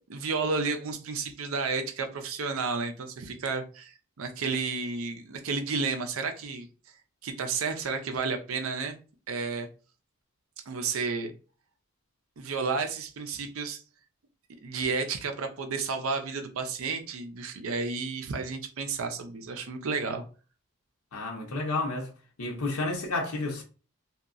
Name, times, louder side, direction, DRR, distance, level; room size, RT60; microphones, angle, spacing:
voice 1, 0.1-6.7 7.2-8.9 9.3-9.7 10.7-11.3 12.4-13.8 14.6-20.2, right 4 dB, 70° right, 0.5 m, -32 dB
voice 2, 21.1-22.1 22.4-23.6, left 2 dB, 80° left, 0.8 m, -31 dB
2.8 x 2.3 x 2.4 m
head